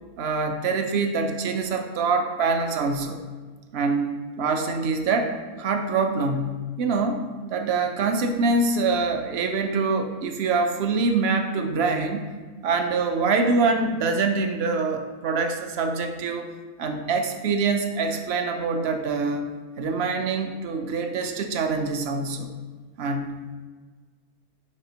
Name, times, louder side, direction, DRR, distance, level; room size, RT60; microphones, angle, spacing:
voice 1, 0.2-3.2 3.7-7.2 7.5-12.3 12.6-16.5 16.8-22.5 23.0-23.3, right 4 dB, 60° right, 5 dB, 0.7 m, -25 dB
9.8 x 4.1 x 2.8 m, 1.4 s
omnidirectional pair, 1.6 m